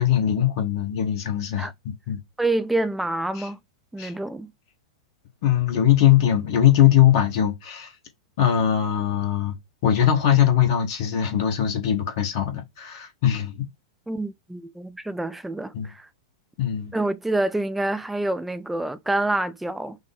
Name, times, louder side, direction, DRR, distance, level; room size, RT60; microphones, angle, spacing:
voice 1, 0.0-2.2 3.4-3.5 4.0-4.1 5.4-7.9 8.4-9.6 9.8-13.7 15.7-15.9 16.6-16.9, left 10 dB, 45° left, 1.3 m, -21 dB
voice 2, 2.4-3.6 3.9-4.5 14.1-16.1 16.9-20.0, right 2 dB, 5° right, 0.4 m, -27 dB
5.8 x 2.2 x 3.5 m
figure-of-eight pair, 95°, 3 cm